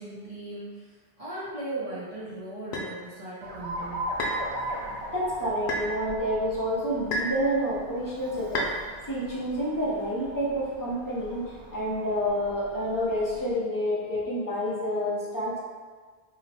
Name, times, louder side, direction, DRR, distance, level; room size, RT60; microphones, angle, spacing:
voice 1, 0.0-4.1, right 2 dB, 40° right, -9 dB, 0.7 m, -38 dB
sound 1, 2.7-2.9 4.2-4.5 5.7-5.9 7.1-7.4 8.5-8.8, left 1 dB, 85° left, 0.8 m, -29 dB
Alarm, 3.4-13.5, right 1 dB, 90° right, 0.8 m, -39 dB
voice 2, 5.1-8.7 9.1-11.4 11.7-15.6, equal, 25° left, -7 dB, 0.6 m, -28 dB
2.9 x 2.1 x 4.0 m, 1.5 s
omnidirectional pair, 1.0 m